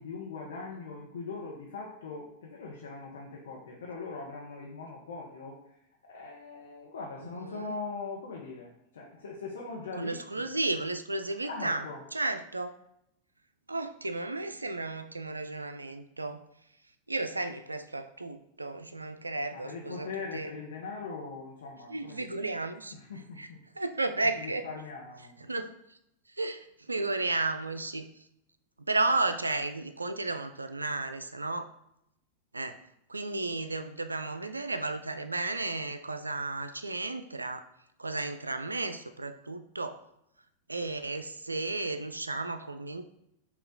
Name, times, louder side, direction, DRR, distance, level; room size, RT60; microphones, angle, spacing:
voice 1, 0.0-5.6 6.1-10.5 11.5-12.0 19.5-22.5 22.9-23.6 24.4-25.3, left 4 dB, 65° left, -2 dB, 0.7 m, -41 dB
voice 2, 7.3-7.7 10.0-11.8 12.1-12.7 13.7-16.4 17.1-20.5 21.9-23.0 23.4-23.5 23.8-24.7 25.4-26.0 26.3-28.3 28.8-31.7 32.5-32.8 33.1-37.6 38.0-40.0 40.7-43.0, right 2 dB, 85° right, 9 dB, 0.3 m, -33 dB
5.6 x 2.4 x 3.9 m, 0.79 s
figure-of-eight pair, 90°, 0 cm